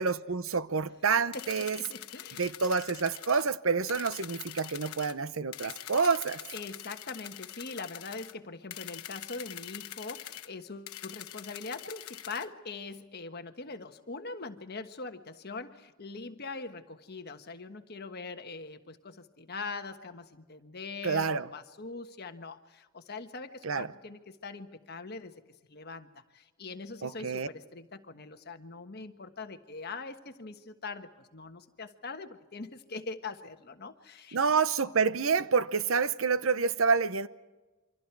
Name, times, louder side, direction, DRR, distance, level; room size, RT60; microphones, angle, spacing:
voice 1, 0.0-1.8 2.4-6.4 21.0-21.5 23.6-23.9 27.0-27.5 34.3-37.3, right 5 dB, 65° right, 0.8 m, -28 dB
sound 1, 1.3-3.4 3.9-5.1 5.5-8.3 8.7-10.5 10.9-12.5, left 12 dB, 90° left, 1.1 m, -44 dB
voice 2, 1.3-2.5 6.5-25.3 25.7-34.4, left 3 dB, 45° left, 1.4 m, -42 dB
28.5 x 25.0 x 4.7 m
head